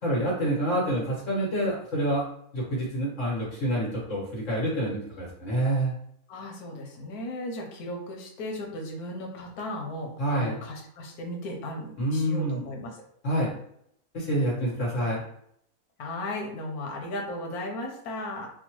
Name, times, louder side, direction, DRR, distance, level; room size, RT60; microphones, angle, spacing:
voice 1, 0.0-2.3 2.5-5.9 10.2-10.6 12.0-12.6 13.2-13.5 14.1-15.2, right 1 dB, 55° left, -5 dB, 1.6 m, -27 dB
voice 2, 6.3-13.0 14.9-15.1 16.0-18.5, left 1 dB, 85° left, 1 dB, 1.3 m, -36 dB
4.4 x 2.2 x 3.0 m, 0.71 s
omnidirectional pair, 1.6 m